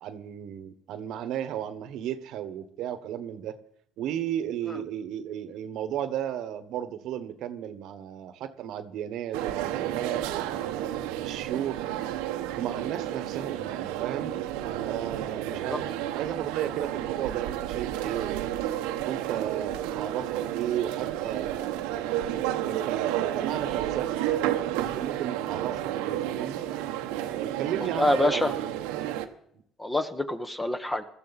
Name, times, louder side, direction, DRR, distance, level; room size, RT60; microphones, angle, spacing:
voice 1, 0.0-3.5 4.0-10.8 11.2-11.8 12.5-14.4 14.8-18.5 19.0-22.0 22.3-24.2 24.7-26.6 27.3-28.6, right 10 dB, 70° right, 11 dB, 1.2 m, -34 dB
sound 1, 9.3-29.2, right 12 dB, 90° right, 1.0 m, -31 dB
voice 2, 27.9-28.5 29.8-31.0, left 1 dB, 15° left, 9 dB, 1.3 m, -26 dB
21.0 x 13.5 x 4.2 m, 0.71 s
supercardioid pair, 85°, 0 cm